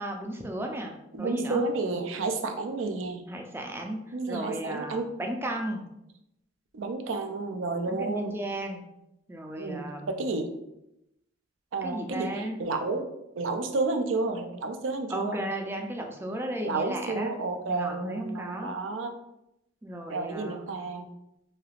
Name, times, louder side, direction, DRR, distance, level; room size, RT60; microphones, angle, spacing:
voice 1, 0.0-1.6 3.3-5.9 7.9-8.8 9.3-10.2 11.8-12.6 15.1-17.3 17.7-18.7 19.8-20.7, right 1 dB, 10° right, 2 dB, 0.3 m, -35 dB
voice 2, 1.1-3.2 4.1-5.0 6.7-8.3 9.6-10.5 11.7-13.1 13.4-15.4 16.6-19.1 20.1-21.1, right 3 dB, 85° right, 6 dB, 0.4 m, -31 dB
3.2 x 2.8 x 2.4 m, 0.86 s
head